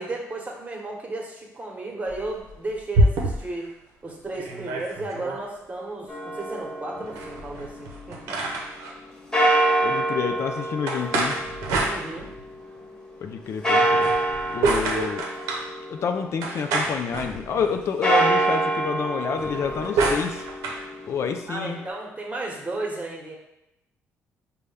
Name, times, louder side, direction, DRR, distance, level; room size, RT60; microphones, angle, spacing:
voice 1, 0.0-3.7 4.0-8.4 11.8-12.3 21.5-23.4, right 2 dB, 25° right, -1 dB, 1.1 m, -34 dB
sound 1, 2.1-3.6 4.1-4.2 4.3-5.4 7.1-8.9 10.9-12.5 13.9-15.7 16.4-17.8 19.3-20.8, right 2 dB, 85° right, 0.7 m, -27 dB
sound 2, 6.1-8.2 9.3-12.7 13.6-16.6 17.9-21.9, right 1 dB, 15° left, 1.2 m, -26 dB
voice 2, 9.8-11.4 13.2-14.1 14.5-15.2 15.9-20.4 21.1-21.8, left 6 dB, 60° left, 6 dB, 0.4 m, -28 dB
5.2 x 2.2 x 3.4 m, 0.88 s
supercardioid pair, 70°, 5 cm